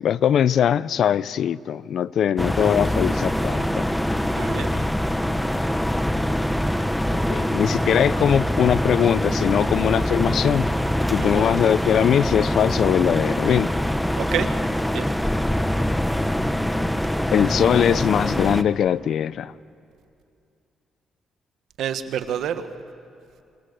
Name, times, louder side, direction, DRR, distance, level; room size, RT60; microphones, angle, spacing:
voice 1, 0.0-3.9 4.7-4.8 7.3-10.7 11.1-13.7 17.3-19.5, left 9 dB, 65° left, 19 dB, 0.5 m, -21 dB
sound 1, 2.4-18.6, equal, 5° left, 1.1 m, -24 dB
voice 2, 4.3-4.8 11.2-11.5 14.1-14.5 14.9-15.1 21.8-22.7, right 9 dB, 80° right, 9 dB, 1.4 m, -28 dB
27.0 x 26.5 x 6.8 m, 2.5 s
cardioid pair, 90°, 0 cm